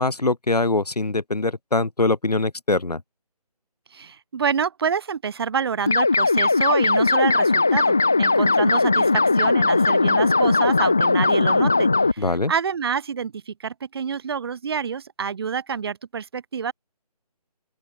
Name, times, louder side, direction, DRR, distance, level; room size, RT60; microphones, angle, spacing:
voice 1, 0.0-3.0 12.2-12.5, left 2 dB, 75° left, 2.7 m, -23 dB
voice 2, 3.9-16.7, right 6 dB, 40° right, 4.2 m, -27 dB
sound 1, 5.9-12.1, left 3 dB, 5° left, 0.4 m, -19 dB
open air
figure-of-eight pair, 155°, 20 cm